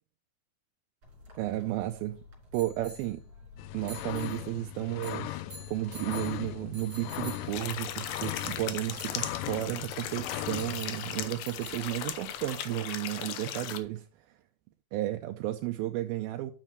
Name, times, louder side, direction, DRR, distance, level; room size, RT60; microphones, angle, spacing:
sound 1, 1.0-12.6, left 1 dB, 35° right, 3.6 m, -49 dB
voice 1, 1.4-2.2 2.5-3.2 3.7-14.3 14.9-16.5, right 15 dB, 85° right, 2.5 m, -33 dB
sound 2, 3.6-11.3, left 15 dB, 90° left, 1.9 m, -39 dB
sound 3, 7.5-13.8, left 10 dB, 75° left, 2.5 m, -38 dB
9.9 x 7.5 x 3.0 m
omnidirectional pair, 4.3 m